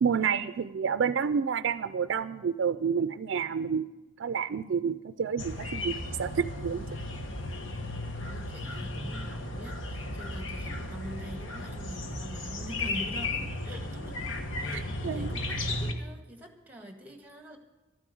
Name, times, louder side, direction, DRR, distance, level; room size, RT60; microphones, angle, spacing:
voice 1, 0.0-3.8 4.2-6.9 14.7-15.3, right 6 dB, 70° right, 12 dB, 0.4 m, -29 dB
sound 1, 5.4-15.9, left 2 dB, 85° left, 1.3 m, -35 dB
voice 2, 8.1-14.2 14.6-17.6, equal, 10° right, 4 dB, 1.7 m, -45 dB
12.5 x 9.8 x 7.8 m, 1.1 s
head